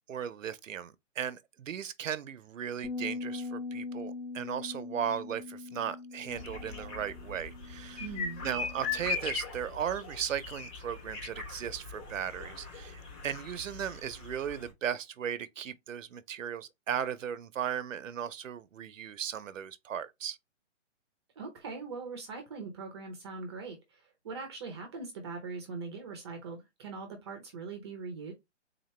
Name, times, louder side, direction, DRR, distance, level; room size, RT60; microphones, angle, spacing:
voice 1, 0.1-8.0 8.4-20.4, right 9 dB, 85° right, 0.7 m, -36 dB
Bass guitar, 2.8-9.1, left 3 dB, 50° left, 1.0 m, -42 dB
sound 1, 6.3-14.7, left 5 dB, 20° left, 1.2 m, -40 dB
voice 2, 8.0-8.5 21.4-28.3, right 4 dB, 20° right, 0.6 m, -41 dB
3.9 x 2.9 x 3.1 m
hypercardioid pair, 155°, 37 cm